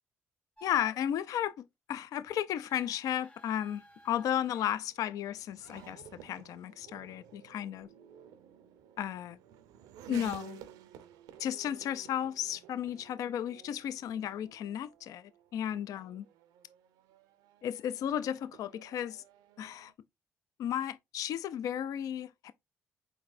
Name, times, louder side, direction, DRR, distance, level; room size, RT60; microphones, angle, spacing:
voice 1, 0.6-7.9 9.0-9.4 10.1-10.6 11.4-16.2 17.6-19.2 19.6-19.9 20.6-22.5, left 10 dB, 70° left, 0.4 m, -34 dB
sound 1, 0.6-1.0 2.5-4.7 5.6-5.9, equal, 20° left, 1.0 m, -55 dB
Race car auto racing / Accelerating revving vroom, 3.8-19.9, right 10 dB, 80° right, 0.5 m, -54 dB
4.4 x 3.9 x 2.5 m
supercardioid pair, 60°, 6 cm